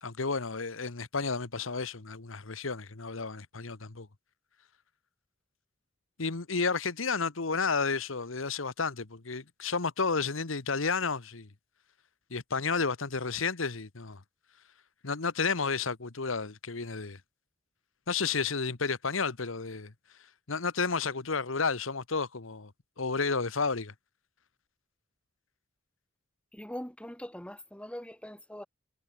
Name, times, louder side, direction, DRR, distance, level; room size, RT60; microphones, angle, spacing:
voice 1, 0.0-4.1 6.2-11.5 12.3-14.2 15.0-17.2 18.1-19.9 20.5-22.7 23.0-23.9, left 4 dB, 85° left, 1.3 m, -31 dB
voice 2, 26.5-28.7, equal, 5° left, 3.7 m, -42 dB
head